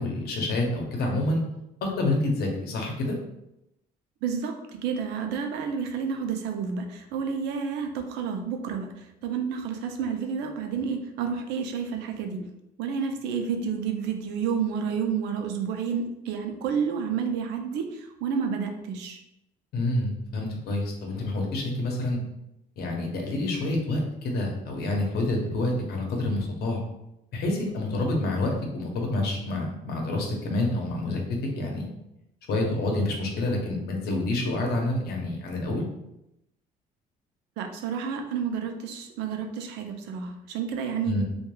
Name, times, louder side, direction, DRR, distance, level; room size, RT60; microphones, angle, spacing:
voice 1, 0.0-1.4 2.0-3.1 19.7-22.2 22.8-26.8 27.3-31.2 31.5-31.9 32.5-35.8 41.1-41.2, left 2 dB, 70° left, 1 dB, 0.7 m, -28 dB
voice 2, 4.2-12.5 12.8-19.2 37.6-41.2, right 6 dB, 90° right, 5 dB, 0.4 m, -30 dB
3.1 x 2.2 x 2.2 m, 0.86 s
cardioid pair, 110°, 17 cm